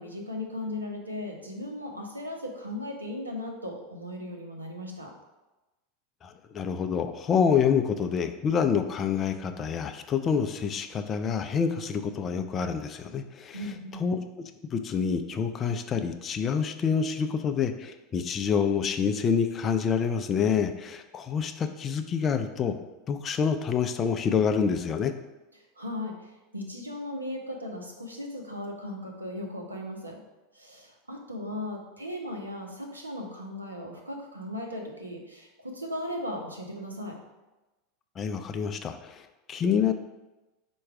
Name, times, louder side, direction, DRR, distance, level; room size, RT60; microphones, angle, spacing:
voice 1, 0.0-5.1 13.5-14.0 25.8-30.2 30.5-37.2, left 1 dB, 90° right, 1 dB, 0.6 m, -37 dB
voice 2, 6.2-13.6 14.0-22.8 23.1-25.1 38.2-39.9, left 6 dB, 30° left, 7 dB, 0.4 m, -27 dB
4.5 x 2.3 x 4.8 m, 1.1 s
figure-of-eight pair, 80°, 0 cm